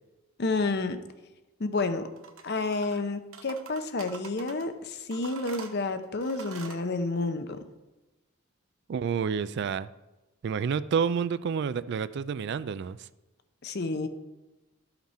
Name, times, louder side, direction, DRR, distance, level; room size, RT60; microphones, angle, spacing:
voice 1, 0.4-1.0 1.6-2.0 2.4-7.5 13.6-14.1, left 3 dB, 50° left, 9 dB, 0.7 m, -30 dB
sound 1, 2.2-3.0 3.3-4.7 5.1-6.8, right 5 dB, 70° right, 0.9 m, -45 dB
voice 2, 8.9-9.9 10.4-13.1, right 6 dB, 50° right, 15 dB, 0.3 m, -29 dB
12.5 x 5.9 x 4.2 m, 1.1 s
head